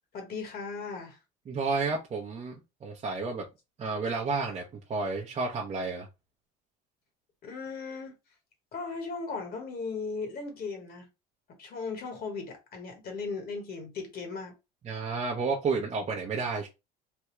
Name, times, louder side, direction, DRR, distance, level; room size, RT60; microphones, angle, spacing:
voice 1, 0.1-1.2 7.4-8.2 8.7-11.1 11.6-14.6, left 4 dB, 45° left, 1.2 m, -37 dB
voice 2, 1.5-2.6 2.8-3.4 3.8-4.6 4.9-6.1 14.9-16.7, right 4 dB, 30° right, 0.8 m, -31 dB
3.4 x 2.3 x 3.0 m
supercardioid pair, 105°, 21 cm